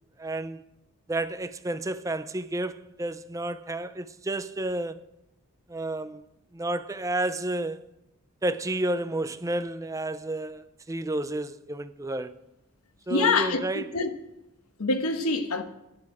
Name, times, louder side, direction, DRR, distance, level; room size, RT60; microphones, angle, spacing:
voice 1, 0.2-0.6 1.1-5.0 5.7-6.2 6.5-7.8 8.4-12.3 13.1-14.0, right 1 dB, 15° right, 0.5 m, -31 dB
voice 2, 13.1-14.1 14.8-15.6, left 3 dB, 80° left, 1.2 m, -25 dB
16.5 x 10.5 x 4.9 m
head